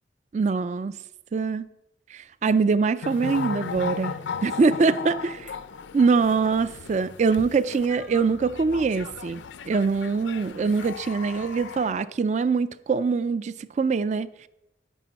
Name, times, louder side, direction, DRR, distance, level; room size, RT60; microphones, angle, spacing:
voice 1, 0.3-1.0 1.3-1.6 2.1-5.5 5.9-9.4 9.7-14.3, right 4 dB, 40° right, 0.3 m, -23 dB
sound 1, 3.0-11.9, left 6 dB, 85° left, 0.5 m, -36 dB
11.0 x 8.5 x 4.1 m
head